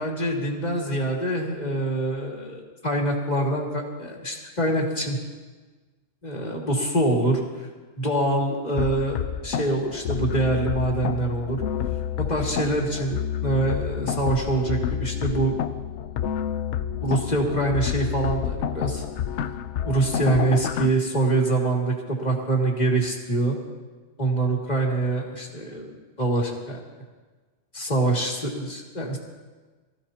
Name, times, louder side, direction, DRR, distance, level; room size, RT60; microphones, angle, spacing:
voice 1, 0.0-5.2 6.2-7.7 8.0-11.6 12.3-15.5 17.0-19.0 19.8-23.6 24.2-26.8 27.7-29.2, right 2 dB, 35° left, -2 dB, 2.5 m, -25 dB
sound 1, 8.8-20.9, left 9 dB, 70° left, 0.9 m, -29 dB
24.0 x 15.0 x 2.9 m, 1.3 s
omnidirectional pair, 1.3 m